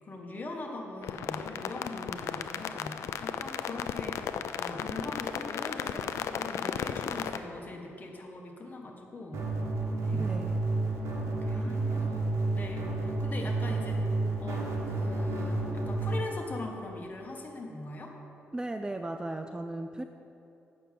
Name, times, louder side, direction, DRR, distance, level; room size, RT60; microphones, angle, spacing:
voice 1, 0.0-4.2 4.6-9.4 10.0-10.3 11.2-14.0 14.4-18.1, left 2 dB, 35° left, 1 dB, 1.6 m, -41 dB
sound 1, 1.0-7.4, left 8 dB, 90° left, 0.4 m, -35 dB
sound 2, 9.3-16.2, right 2 dB, 85° right, 1.5 m, -30 dB
voice 2, 10.1-10.6 11.5-12.2 18.5-20.0, right 2 dB, 15° right, 7 dB, 0.4 m, -37 dB
8.3 x 6.2 x 7.5 m, 2.9 s
cardioid pair, 90°, 5 cm